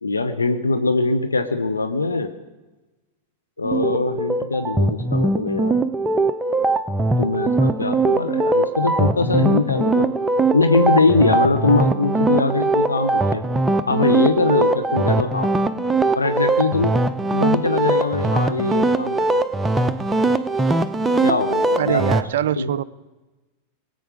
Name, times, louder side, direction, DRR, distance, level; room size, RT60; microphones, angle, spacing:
voice 1, 0.0-2.3 3.6-5.8 7.2-10.1 10.5-13.4 13.9-15.5 16.2-17.0 17.3-19.4 21.2-22.2 22.6-22.7, left 3 dB, 75° left, 7 dB, 0.9 m, -21 dB
sound 1, 3.6-22.2, right 2 dB, 10° right, 0.6 m, -21 dB
voice 2, 21.8-22.8, right 11 dB, 60° right, 15 dB, 0.4 m, -23 dB
23.0 x 8.0 x 5.1 m, 1.1 s
figure-of-eight pair, 90°, 0 cm